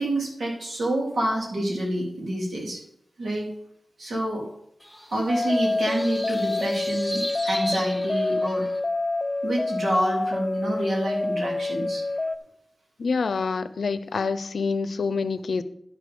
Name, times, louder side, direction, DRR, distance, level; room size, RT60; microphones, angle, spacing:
voice 1, 0.0-2.8 3.2-3.5 4.0-4.4 5.1-8.7 9.4-12.0, right 1 dB, 85° right, -2 dB, 3.2 m, -27 dB
sound 1, 4.8-8.8, equal, ahead, 2.6 m, -37 dB
sound 2, 5.3-12.4, left 2 dB, 30° left, 0.6 m, -27 dB
voice 2, 13.0-15.6, left 4 dB, 90° left, 13 dB, 0.6 m, -26 dB
11.0 x 6.6 x 5.4 m, 0.75 s
wide cardioid pair, 70°, 0 cm